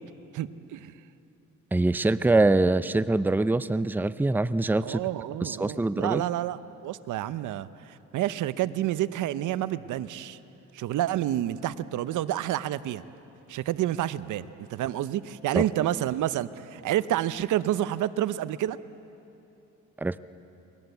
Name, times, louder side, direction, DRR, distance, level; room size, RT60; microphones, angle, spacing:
voice 1, 0.3-0.9 4.8-10.4 10.7-13.0 13.5-18.8, right 13 dB, 80° right, 15 dB, 0.8 m, -29 dB
voice 2, 1.7-5.0 5.4-6.3 15.5-15.7 20.0-20.2, right 2 dB, 5° right, 15 dB, 0.6 m, -24 dB
30.0 x 22.0 x 8.1 m, 2.9 s
cardioid pair, 90°, 30 cm